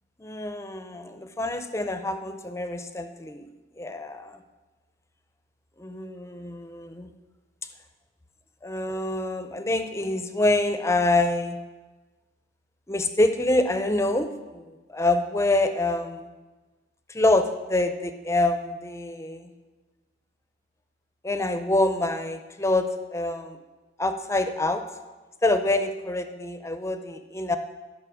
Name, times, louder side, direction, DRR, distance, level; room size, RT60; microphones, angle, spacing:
voice 1, 0.2-3.5 3.8-4.4 5.8-7.1 8.6-11.6 12.9-16.3 17.1-19.5 21.2-23.6 24.0-24.9 25.4-27.6, left 2 dB, 15° left, 9 dB, 0.6 m, -26 dB
12.0 x 5.4 x 7.1 m, 1.2 s
head